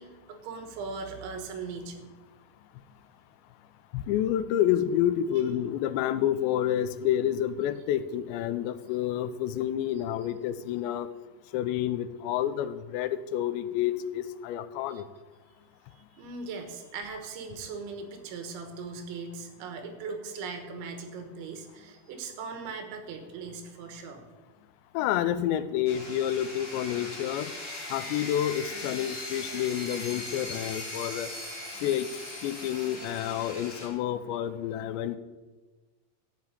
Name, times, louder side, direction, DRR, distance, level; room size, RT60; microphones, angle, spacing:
voice 1, 0.0-2.1 15.9-24.2, right 4 dB, 85° right, 6 dB, 3.9 m, -39 dB
voice 2, 3.9-11.1 11.5-15.0 24.9-27.5 27.9-31.3 31.8-32.1 32.4-35.2, left 11 dB, 85° left, 12 dB, 2.9 m, -29 dB
sound 1, 25.8-33.9, left 2 dB, 30° left, 1.3 m, -39 dB
13.5 x 5.6 x 9.0 m, 1.2 s
omnidirectional pair, 5.1 m